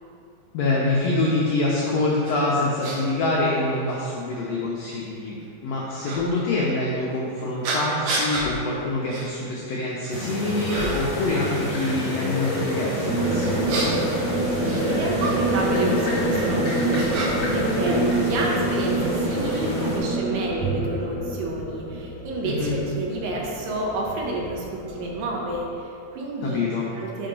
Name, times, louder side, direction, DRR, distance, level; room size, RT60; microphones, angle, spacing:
voice 1, 0.5-14.0 22.4-22.8 26.4-26.9, left 2 dB, 85° left, -4 dB, 1.4 m, -25 dB
sound 1, 2.2-2.3 2.8-3.0 3.9-4.0 6.0-6.2 7.6-8.5 9.1-9.3 9.7-10.2 10.7-11.2 13.4-15.3 16.3-17.6 17.8-18.7, right 2 dB, 70° right, 2.0 m, -30 dB
sound 2, 10.1-20.0, left 1 dB, 50° left, 1.1 m, -29 dB
sound 3, 13.0-25.7, right 2 dB, 50° right, 1.3 m, -27 dB
voice 2, 14.6-18.0 18.2-26.6 27.0-27.3, right 2 dB, 90° right, -2 dB, 2.6 m, -29 dB
5.7 x 3.7 x 5.2 m, 2.6 s
omnidirectional pair, 3.8 m